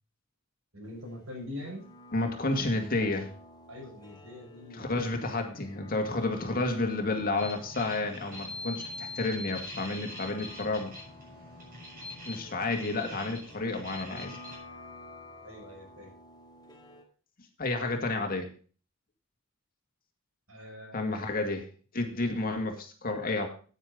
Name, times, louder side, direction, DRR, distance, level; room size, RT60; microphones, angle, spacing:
voice 1, 0.7-1.9 3.7-5.0 6.1-6.3 15.4-16.1 20.5-21.4 22.2-22.4, left 1 dB, 90° right, 0 dB, 5.9 m, -44 dB
sound 1, 0.8-17.0, left 2 dB, 20° left, 1.9 m, -52 dB
voice 2, 2.1-3.3 4.7-10.9 12.2-14.4 17.6-18.5 20.9-21.7 21.9-23.5, left 2 dB, 45° left, 4 dB, 2.1 m, -31 dB
sound 2, 7.4-14.6, left 2 dB, 45° right, 6.4 m, -43 dB
9.4 x 9.0 x 5.2 m, 0.39 s
head